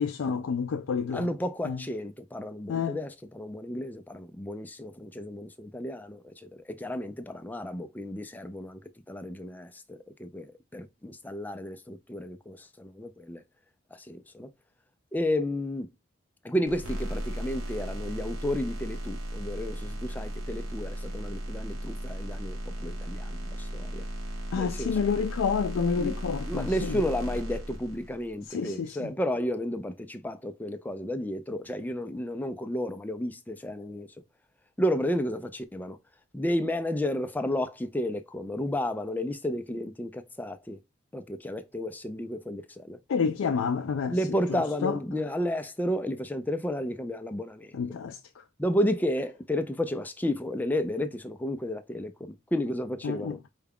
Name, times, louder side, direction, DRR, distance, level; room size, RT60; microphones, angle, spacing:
voice 1, 0.0-1.3 1.7-1.8 2.7-3.0 24.5-27.0 28.5-29.1 43.1-44.2 44.8-45.0 47.7-48.2 53.0-53.4, left 6 dB, 80° left, 0.4 m, -29 dB
voice 2, 1.1-13.4 13.9-14.5 15.1-15.9 16.4-24.1 24.5-25.3 26.0-26.2 26.5-34.1 34.8-36.0 36.3-40.8 41.1-43.0 44.1-47.8 48.6-53.4, left 1 dB, 10° left, 0.4 m, -32 dB
sound 1, 16.7-28.3, equal, 90° right, 1.1 m, -36 dB
4.7 x 2.2 x 3.5 m
head